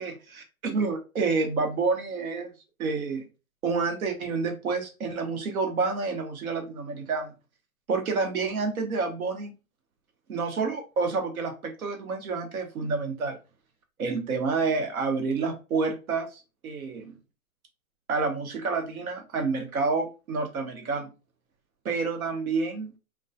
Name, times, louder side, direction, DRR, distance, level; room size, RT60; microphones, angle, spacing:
voice 1, 0.0-2.5 2.8-3.2 3.6-7.3 7.9-9.5 10.3-13.4 14.0-17.2 18.1-21.1 21.8-22.9, right 4 dB, 80° right, 4 dB, 1.0 m, -29 dB
2.3 x 2.2 x 2.6 m, 0.30 s
hypercardioid pair, 180°, 42 cm